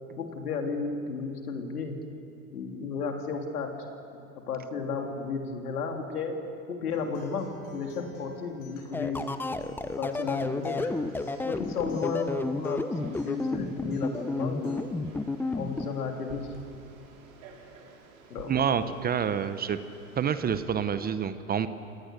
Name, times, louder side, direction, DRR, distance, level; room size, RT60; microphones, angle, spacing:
voice 1, 0.2-2.0 2.5-3.7 4.5-6.4 6.7-9.3 10.0-10.8 11.4-14.8 15.5-16.5 18.3-18.6, left 5 dB, 85° left, 3 dB, 3.2 m, -33 dB
Acoustic guitar, 6.9-14.9, left 2 dB, 65° left, 7.4 m, -53 dB
sound 1, 8.9-15.9, left 3 dB, 5° left, 0.5 m, -31 dB
Frog, 10.3-20.6, right 4 dB, 65° right, 5.4 m, -52 dB
voice 2, 18.5-19.8 20.2-21.7, right 7 dB, 20° right, 12 dB, 0.9 m, -27 dB
29.0 x 18.0 x 6.7 m, 2.7 s
hypercardioid pair, 105°, 44 cm